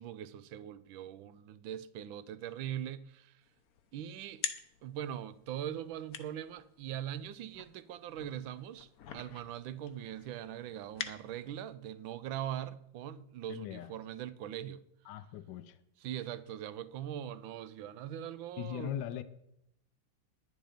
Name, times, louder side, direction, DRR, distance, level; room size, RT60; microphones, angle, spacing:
voice 1, 0.0-3.4 3.9-4.4 4.8-14.8 16.0-19.2, right 10 dB, 90° right, 1.4 m, -41 dB
sound 1, 3.4-11.7, left 8 dB, 60° left, 1.2 m, -46 dB
voice 2, 13.5-13.9 15.0-15.8 18.6-19.2, left 11 dB, 75° left, 1.4 m, -40 dB
10.5 x 10.0 x 5.0 m
omnidirectional pair, 2.1 m